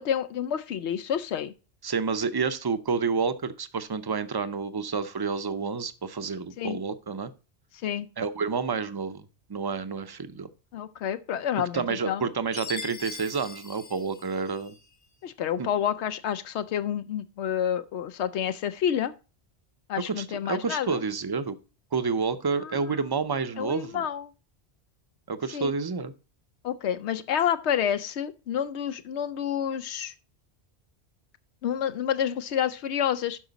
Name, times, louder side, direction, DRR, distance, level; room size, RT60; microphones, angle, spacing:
voice 1, 0.0-1.5 6.6-6.8 7.8-8.1 10.7-12.2 15.2-19.1 19.9-21.0 22.5-22.7 23.6-24.3 25.5-25.7 26.6-30.1 31.6-33.4, left 9 dB, 85° left, 0.9 m, -29 dB
voice 2, 1.8-7.3 8.2-10.5 11.7-14.7 15.6-15.7 20.2-21.5 21.9-24.1 25.3-26.1, right 5 dB, 30° right, 0.5 m, -29 dB
Chime, 12.5-14.8, left 5 dB, 45° left, 1.3 m, -41 dB
12.0 x 4.9 x 3.9 m
omnidirectional pair, 1.1 m